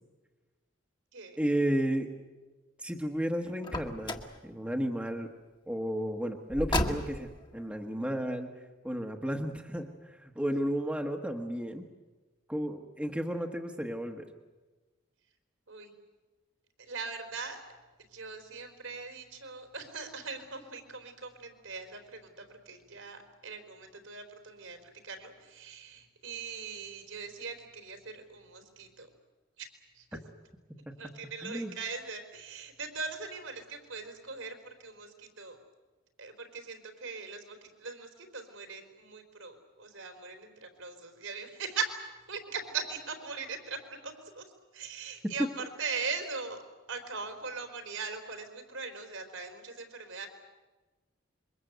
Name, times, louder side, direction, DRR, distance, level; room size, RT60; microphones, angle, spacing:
voice 1, 1.4-2.1 2.8-4.1 4.4-5.3 5.7-8.5 8.8-11.9 12.5-14.3 31.4-31.7, equal, 5° right, 3 dB, 1.3 m, -33 dB
Car, 3.6-4.4 6.5-7.4, left 1 dB, 25° left, 1.5 m, -32 dB
voice 2, 16.8-17.6 18.1-29.1 29.6-29.7 29.9-30.2 31.0-35.6 36.2-42.0 42.3-44.4 44.7-46.6 46.9-50.3, right 4 dB, 75° right, 6 dB, 4.1 m, -40 dB
27.0 x 23.5 x 8.1 m, 1.2 s
head